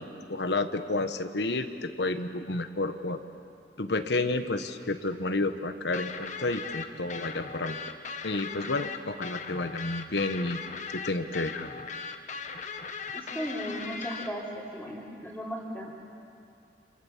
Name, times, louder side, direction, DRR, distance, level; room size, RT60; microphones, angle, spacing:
voice 1, 0.0-3.2 3.8-7.8 8.2-10.6 10.9-11.7, left 2 dB, 70° left, 8 dB, 1.3 m, -30 dB
sound 1, 5.9-14.3, left 5 dB, 40° left, 1.4 m, -38 dB
voice 2, 13.1-15.9, equal, 5° left, -8 dB, 3.5 m, -36 dB
29.0 x 28.0 x 7.4 m, 2.6 s
head